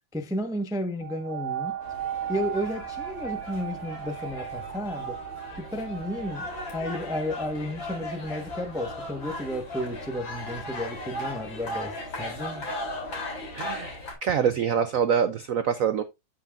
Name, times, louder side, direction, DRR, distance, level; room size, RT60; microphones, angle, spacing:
voice 1, 0.1-1.7 2.3-5.2 5.6-12.7, equal, 5° right, 0.7 m, -32 dB
sound 1, 1.0-10.3 10.9-11.0, right 10 dB, 40° right, 1.4 m, -38 dB
sound 2, 1.8-14.1, left 1 dB, 70° left, 3.9 m, -37 dB
voice 2, 13.5-16.0, right 7 dB, 85° right, 0.7 m, -25 dB
12.5 x 5.8 x 2.5 m
omnidirectional pair, 2.2 m